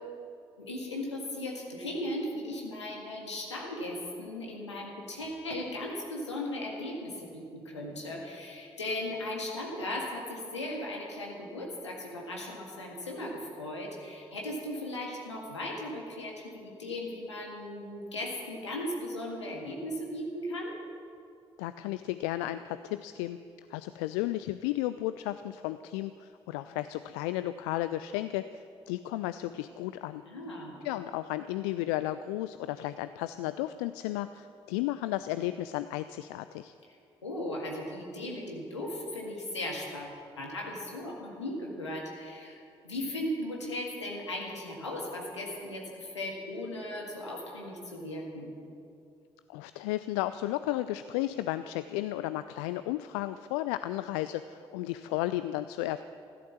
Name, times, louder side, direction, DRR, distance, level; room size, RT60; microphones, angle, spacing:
voice 1, 0.6-20.8 30.3-30.7 37.2-48.5, left 1 dB, 90° left, -1 dB, 1.9 m, -37 dB
voice 2, 21.6-23.4 23.7-30.2 30.8-36.7 49.5-56.0, left 15 dB, 70° left, 13 dB, 0.4 m, -33 dB
15.0 x 12.0 x 7.2 m, 2.5 s
figure-of-eight pair, 40°, 14 cm